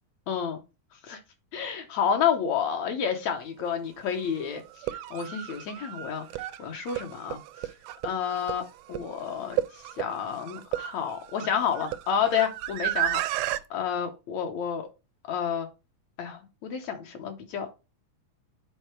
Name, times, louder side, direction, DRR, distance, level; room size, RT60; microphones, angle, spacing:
voice 1, 0.3-0.6 1.0-1.2 1.5-4.6 4.9-7.4 8.0-8.6 8.9-13.2 13.7-14.9 15.3-15.7 16.2-17.7, left 7 dB, 70° left, 4 dB, 1.9 m, -30 dB
sound 1, 3.6-3.7 4.7-13.6, right 14 dB, 80° right, 1.9 m, -33 dB
8.2 x 4.0 x 4.5 m, 0.28 s
omnidirectional pair, 3.7 m